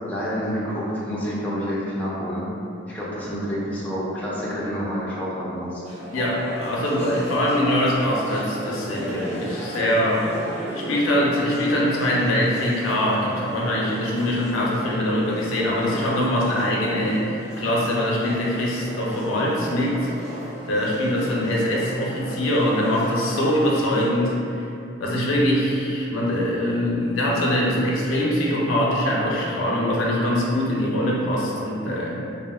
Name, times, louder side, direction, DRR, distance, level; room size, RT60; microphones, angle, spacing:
voice 1, 0.1-2.5 2.9-5.8, equal, 10° left, -8 dB, 0.4 m, -28 dB
sound 1, 5.8-24.1, equal, 35° right, 0.7 m, -36 dB
voice 2, 6.1-10.3 10.7-20.1 20.4-24.6 25.0-32.2, left 1 dB, 85° left, -4 dB, 0.5 m, -23 dB
3.6 x 2.1 x 2.2 m, 2.7 s
head